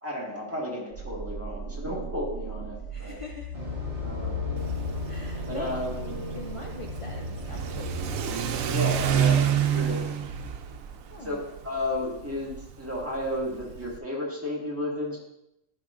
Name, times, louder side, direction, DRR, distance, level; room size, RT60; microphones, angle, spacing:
voice 1, 0.0-3.2 4.0-4.5 5.4-6.2 8.6-9.4 9.7-10.0 11.2-15.2, left 1 dB, 10° right, -4 dB, 1.6 m, -33 dB
sound 1, 0.9-8.7 9.6-11.4, left 2 dB, 80° left, 3.8 m, -37 dB
voice 2, 2.9-3.6 5.1-5.8 6.3-8.2 11.1-11.4, left 2 dB, 55° left, 1 dB, 0.3 m, -42 dB
sound 2, 3.5-9.6, right 1 dB, 25° right, 1.6 m, -39 dB
Car / Accelerating revving vroom, 4.6-14.0, right 9 dB, 90° right, 1.0 m, -29 dB
12.0 x 5.4 x 2.5 m, 0.81 s
omnidirectional pair, 1.4 m